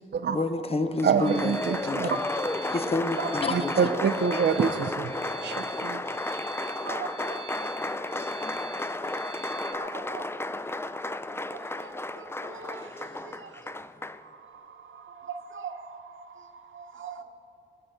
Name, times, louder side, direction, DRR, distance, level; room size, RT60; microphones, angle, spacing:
voice 1, 0.3-2.1 2.7-3.9 4.3-4.4, left 2 dB, 30° left, 9 dB, 0.7 m, -29 dB
Applause, 1.0-14.2, left 2 dB, 10° left, 0.4 m, -33 dB
voice 2, 1.0-2.2 3.5-6.0, right 6 dB, 60° right, 7 dB, 0.5 m, -26 dB
sound 1, 1.2-9.7, right 4 dB, 30° right, 0.9 m, -44 dB
voice 3, 3.2-3.6 4.6-4.7 6.8-7.1 9.7-9.9 12.5-12.8 15.3-15.7 17.0-17.2, right 6 dB, 80° right, 7 dB, 0.9 m, -37 dB
20.5 x 7.7 x 5.6 m, 2.9 s
cardioid pair, 70°, 20 cm